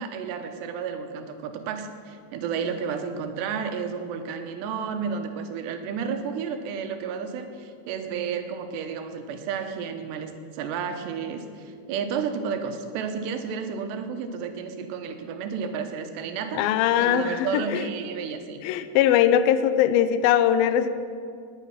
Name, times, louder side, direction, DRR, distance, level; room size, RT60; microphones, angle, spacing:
voice 1, 0.0-16.6 17.0-18.6, right 6 dB, 85° right, 6 dB, 3.2 m, -32 dB
voice 2, 16.5-17.9 18.6-20.9, left 10 dB, 85° left, 11 dB, 2.1 m, -21 dB
19.5 x 9.6 x 5.8 m, 2.4 s
omnidirectional pair, 4.9 m